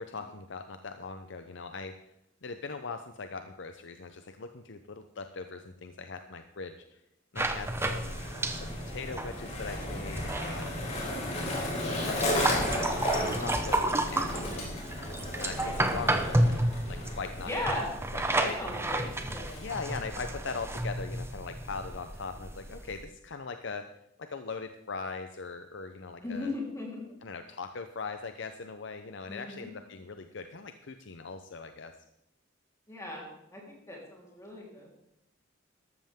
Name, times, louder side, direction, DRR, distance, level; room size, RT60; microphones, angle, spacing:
voice 1, 0.0-1.9 2.4-7.0 7.3-10.8 11.5-14.8 15.4-16.6 16.9-17.7 18.1-18.6 19.6-23.8 24.2-26.5 27.2-31.9, left 4 dB, 65° left, 8 dB, 0.7 m, -40 dB
Skateboard, 7.4-20.1, left 1 dB, 35° left, 3.9 m, -35 dB
sound 1, 7.4-23.0, right 1 dB, 15° right, 0.9 m, -32 dB
voice 2, 14.2-14.5 17.5-17.9 18.3-19.7 26.2-27.1 29.3-29.7 32.9-33.3 33.5-34.9, left 1 dB, 15° left, -3 dB, 3.7 m, -37 dB
13.0 x 13.0 x 3.6 m, 0.81 s
head